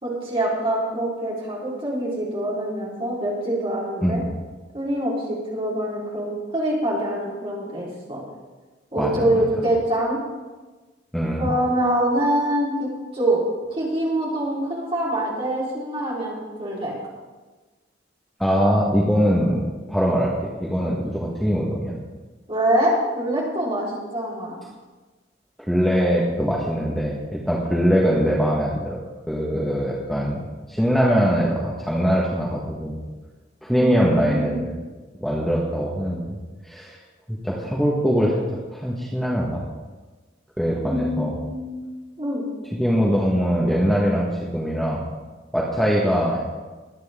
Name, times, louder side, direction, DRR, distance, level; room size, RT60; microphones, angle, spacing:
voice 1, 0.0-4.2 4.7-8.2 8.9-10.2 11.4-13.4 13.7-16.9 22.5-24.6 33.7-34.6 40.8-41.8 42.2-42.4, right 1 dB, 30° right, -6 dB, 4.3 m, -25 dB
voice 2, 9.0-9.3 11.1-11.5 18.4-19.6 19.9-22.0 25.6-29.0 29.3-30.4 30.7-33.0 33.6-34.7 35.2-36.4 36.6-37.0 37.3-38.4 38.7-39.6 40.6-41.4 42.7-44.3 44.5-45.0 45.5-46.5, equal, ahead, -5 dB, 1.6 m, -22 dB
22.0 x 9.1 x 3.8 m, 1.3 s
head